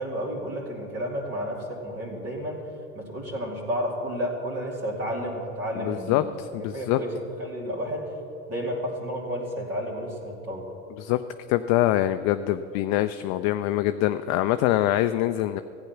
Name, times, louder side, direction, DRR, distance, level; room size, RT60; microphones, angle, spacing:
voice 1, 0.0-2.6 2.9-7.1 7.4-8.1 8.5-10.7, equal, 35° right, -2 dB, 2.7 m, -31 dB
voice 2, 5.8-7.0 11.0-11.2 11.5-15.6, left 14 dB, 45° left, 10 dB, 0.5 m, -24 dB
14.5 x 9.1 x 5.9 m, 2.9 s
hypercardioid pair, 80°, 41 cm